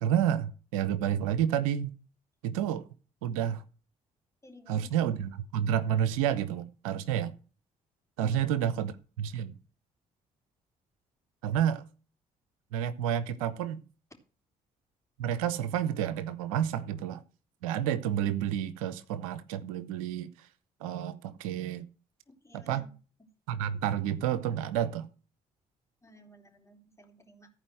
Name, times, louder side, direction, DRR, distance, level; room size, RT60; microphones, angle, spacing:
voice 1, 0.0-1.9 2.4-2.8 3.2-3.6 4.7-7.3 8.2-8.9 9.2-9.5 11.4-11.8 12.7-13.8 15.2-17.2 17.6-20.3 20.8-21.9 22.5-22.9 23.5-25.1, right 10 dB, 90° right, 0.7 m, -30 dB
voice 2, 4.4-4.9 8.2-8.7 22.3-22.9 26.0-27.5, equal, 15° left, 3.7 m, -54 dB
14.0 x 4.9 x 7.7 m
hypercardioid pair, 50°, 17 cm